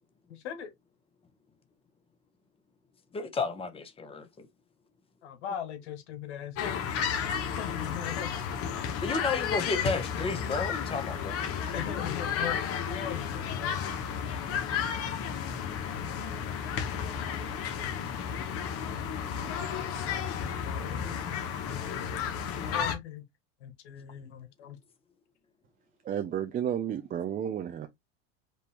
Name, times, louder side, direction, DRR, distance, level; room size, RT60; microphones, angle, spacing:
voice 1, 0.3-0.7 5.2-6.8 7.5-8.4 11.7-13.8 19.9-21.4 21.7-23.2 23.6-24.8, left 9 dB, 80° left, 1.5 m, -40 dB
voice 2, 3.1-4.5 9.0-11.4, left 4 dB, 15° left, 1.1 m, -32 dB
sound 1, 6.6-22.9, left 7 dB, 45° left, 1.2 m, -33 dB
voice 3, 26.1-27.9, right 9 dB, 25° right, 0.6 m, -32 dB
5.1 x 2.7 x 3.4 m
supercardioid pair, 110°, 34 cm